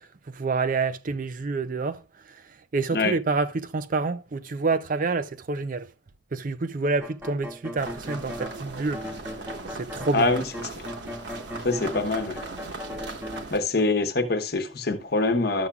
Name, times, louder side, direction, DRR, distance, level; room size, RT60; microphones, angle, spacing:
voice 1, 0.3-2.0 2.7-5.9 6.3-9.0 9.7-10.3, right 3 dB, 45° right, 0.5 m, -27 dB
sound 1, 7.0-8.6 8.9-13.4, left 1 dB, 10° right, 0.9 m, -38 dB
sound 2, 7.8-13.6, right 3 dB, 60° right, 1.2 m, -39 dB
voice 2, 10.1-10.4 11.6-12.4 13.5-15.7, left 3 dB, 55° left, 1.0 m, -24 dB
12.0 x 7.1 x 2.3 m
head